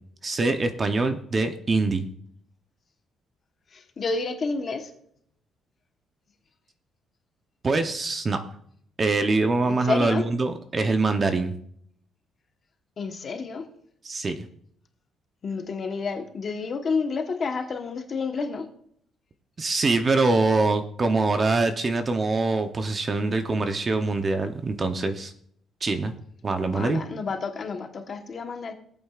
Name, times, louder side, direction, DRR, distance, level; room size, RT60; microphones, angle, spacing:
voice 1, 0.2-2.1 7.6-8.4 9.0-11.5 14.0-14.5 19.6-25.3 25.8-26.1 26.4-27.0, right 3 dB, 25° right, 8 dB, 0.7 m, -24 dB
voice 2, 3.7-4.9 9.8-10.2 13.0-13.6 15.4-18.7 26.7-28.7, left 4 dB, 35° left, 5 dB, 1.1 m, -29 dB
19.0 x 8.6 x 2.4 m, 0.65 s
cardioid pair, 160°, 0 cm